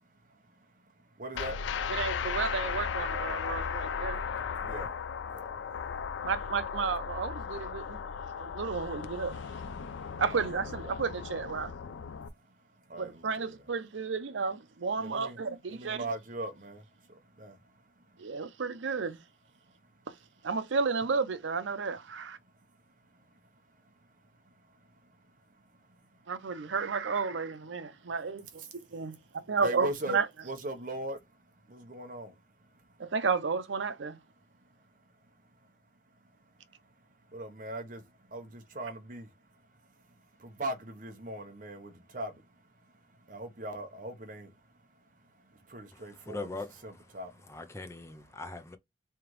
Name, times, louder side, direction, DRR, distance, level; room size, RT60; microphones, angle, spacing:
voice 1, 0.0-1.9 4.4-6.3 8.3-8.6 9.8-10.5 12.1-13.7 15.0-15.4 15.7-18.4 19.6-20.1 22.4-26.3 27.9-28.1 28.6-33.1 34.4-35.8 36.0-46.6 46.8-47.6, right 1 dB, 45° right, 0.9 m, -43 dB
sound 1, 1.3-12.3, left 6 dB, 85° left, 0.4 m, -36 dB
voice 2, 1.9-4.2 6.2-8.0 8.4-9.4 10.2-11.7 13.0-16.0 18.2-19.2 20.4-22.4 26.3-28.6 28.9-30.3 33.0-34.2, right 5 dB, 85° right, 0.6 m, -32 dB
voice 3, 45.9-46.9 47.5-48.8, left 3 dB, 15° left, 0.5 m, -41 dB
3.7 x 3.3 x 3.0 m
head